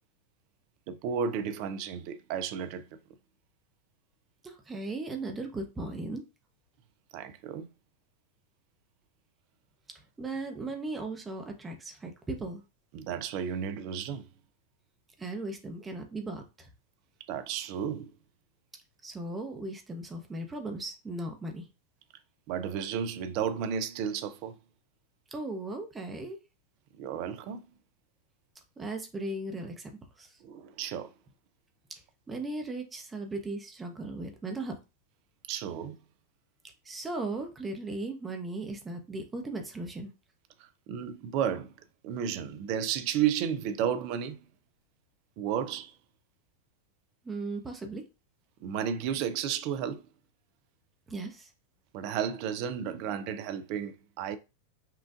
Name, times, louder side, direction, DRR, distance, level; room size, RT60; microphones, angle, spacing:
voice 1, 0.9-2.9 7.1-7.7 12.9-14.3 17.3-18.1 22.5-24.6 27.0-27.7 30.4-31.1 35.5-36.0 40.6-41.7 42.0-44.4 45.4-45.9 48.6-50.0 51.9-54.4, right 8 dB, 45° right, 0.5 m, -33 dB
voice 2, 4.4-6.2 10.2-12.6 15.2-16.7 19.0-21.7 25.3-26.4 28.8-29.9 30.2-30.4 32.3-34.8 36.8-40.1 47.2-48.0 51.1-51.5, right 2 dB, 15° right, 0.8 m, -37 dB
5.6 x 2.4 x 2.5 m
figure-of-eight pair, 90°, 0 cm